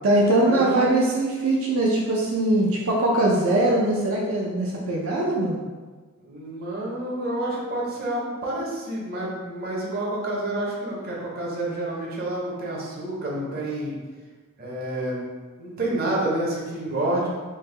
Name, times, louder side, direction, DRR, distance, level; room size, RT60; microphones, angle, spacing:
voice 1, 0.0-5.6, right 1 dB, 80° right, -3 dB, 0.4 m, -21 dB
voice 2, 6.2-14.0 14.6-15.3 15.6-17.3, right 1 dB, 50° right, -4 dB, 0.7 m, -29 dB
3.3 x 2.1 x 3.2 m, 1.4 s
head